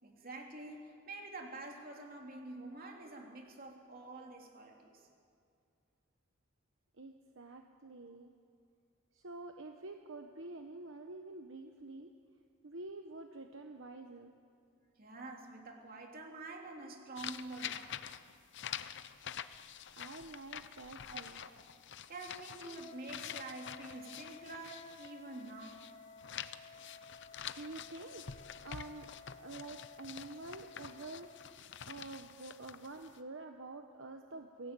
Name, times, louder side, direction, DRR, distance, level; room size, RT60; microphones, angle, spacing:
voice 1, 0.0-5.1 15.0-18.0 21.1-21.6 22.1-25.9, right 2 dB, 45° right, 1 dB, 3.2 m, -47 dB
voice 2, 7.0-8.3 9.1-12.1 12.6-14.3 19.9-21.4 27.5-28.3 28.6-29.1 29.4-31.3 31.8-34.7, right 2 dB, 70° right, 4 dB, 1.1 m, -48 dB
sound 1, 17.2-25.9 26.2-33.2, left 9 dB, 60° left, 0.7 m, -47 dB
Wind instrument woodwind instrument, 22.8-31.6, left 4 dB, 35° left, 1.8 m, -56 dB
23.0 x 17.0 x 9.1 m, 2.3 s
head